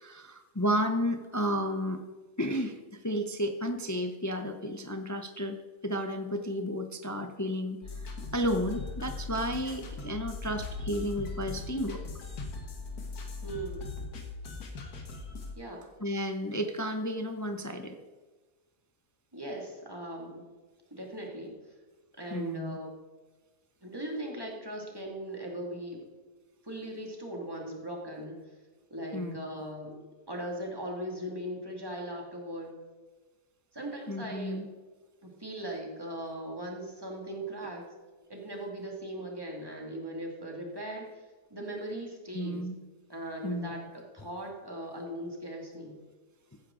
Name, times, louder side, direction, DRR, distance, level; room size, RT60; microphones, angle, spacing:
voice 1, 0.0-2.0 2.4-2.8 3.0-5.6 5.8-8.0 8.3-12.0 16.0-18.0 22.3-22.8 29.1-29.4 34.1-34.7 42.3-42.7 43.4-43.8, equal, 25° left, 7 dB, 0.3 m, -32 dB
sound 1, 7.8-15.5, left 3 dB, 85° left, 2.0 m, -39 dB
voice 2, 13.4-13.9 15.6-15.9 19.3-20.5 20.9-21.5 22.1-23.0 23.8-26.1 26.6-28.4 28.9-32.8 33.7-34.6 35.2-37.9 38.3-41.2 41.5-42.7 43.1-46.0, right 1 dB, 15° right, 0 dB, 2.2 m, -39 dB
15.5 x 9.7 x 3.8 m, 1.3 s
omnidirectional pair, 1.6 m